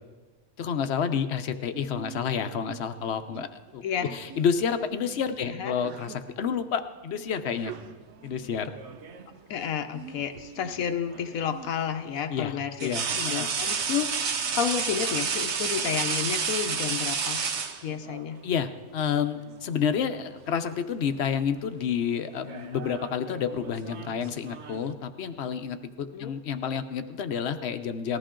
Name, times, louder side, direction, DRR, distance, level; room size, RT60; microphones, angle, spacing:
voice 1, 0.6-3.5 3.7-3.8 4.1-7.8 8.2-8.7 12.3-13.1 13.3-13.5 18.4-28.2, left 7 dB, 55° left, 9 dB, 0.9 m, -29 dB
Sneeze, 1.7-11.7, right 7 dB, 80° right, 1.2 m, -47 dB
voice 2, 3.8-4.2 5.5-5.8 9.5-14.1 14.5-17.4 17.8-18.4 26.1-26.3, left 8 dB, 75° left, 7 dB, 1.1 m, -31 dB
sound 1, 8.5-9.4 11.1-11.3 12.8-18.3 19.5-19.7 20.1-20.8 21.1-21.5 22.3-24.9, right 6 dB, 55° right, 1.1 m, -31 dB
19.0 x 14.0 x 3.8 m, 1.3 s
omnidirectional pair, 1.5 m